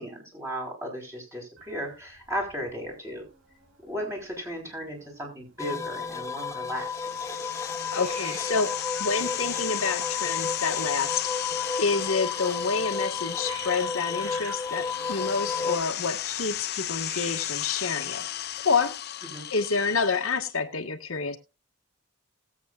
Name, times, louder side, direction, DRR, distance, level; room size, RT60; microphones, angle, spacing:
voice 1, 0.0-3.3 3.8-6.9 19.3-19.4, equal, 15° right, 4.9 m, -35 dB
Hiss, 1.6-18.9, right 3 dB, 75° right, 5.4 m, -50 dB
sound 1, 5.6-15.8, left 5 dB, 15° left, 1.0 m, -32 dB
sound 2, 6.7-20.5, left 12 dB, 50° left, 0.7 m, -35 dB
voice 2, 7.6-11.3 11.8-18.3 18.6-19.0 19.5-21.4, left 4 dB, 90° left, 1.7 m, -28 dB
20.5 x 8.4 x 2.5 m
head